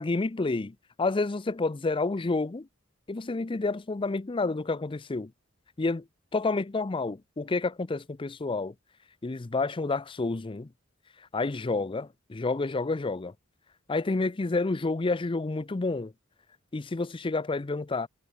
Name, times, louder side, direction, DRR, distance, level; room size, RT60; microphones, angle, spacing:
voice 1, 0.0-2.7 3.1-5.3 5.8-6.0 6.3-8.7 9.2-10.7 11.3-13.3 13.9-16.1 16.7-18.1, left 3 dB, 25° left, 0.5 m, -29 dB
head